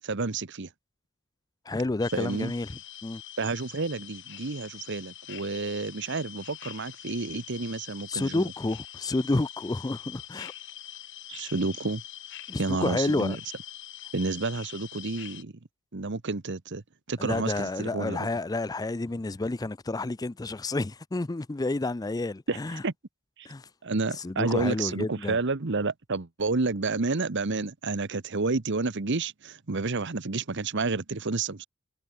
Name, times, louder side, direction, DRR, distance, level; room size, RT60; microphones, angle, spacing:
voice 1, 0.0-0.7 2.1-2.5 3.4-8.5 11.3-12.0 12.6-13.4 14.1-15.5 15.9-18.3 22.5-22.9 23.4-23.5 23.8-31.7, right 3 dB, 55° right, 1.0 m, -30 dB
voice 2, 1.7-2.7 3.0-3.2 8.1-10.5 12.5-13.4 17.2-22.8 23.4-23.6 24.2-25.4, left 2 dB, 15° left, 0.4 m, -30 dB
sound 1, 2.0-15.4, left 12 dB, 60° left, 2.3 m, -44 dB
head